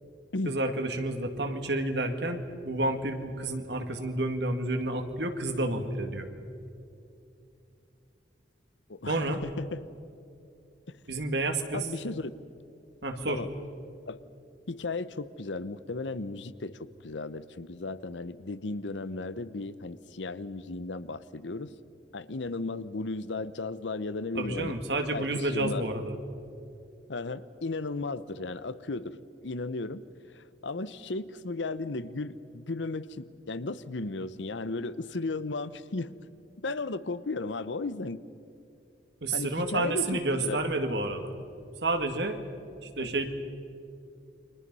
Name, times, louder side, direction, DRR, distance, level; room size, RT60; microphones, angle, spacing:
voice 1, 0.4-6.3 9.1-9.4 11.1-11.9 13.0-13.4 24.3-26.2 39.2-41.4 41.8-42.4 42.8-43.3, right 2 dB, 70° right, 6 dB, 2.3 m, -30 dB
voice 2, 8.9-9.8 10.9-11.0 11.7-12.3 13.3-13.5 14.1-14.2 14.7-21.7 22.1-24.8 25.1-25.9 27.1-29.2 29.4-30.0 30.3-36.2 36.6-38.2 39.3-40.6 43.0-43.1, left 3 dB, 90° left, 15 dB, 0.9 m, -35 dB
29.5 x 24.0 x 5.6 m, 2.7 s
head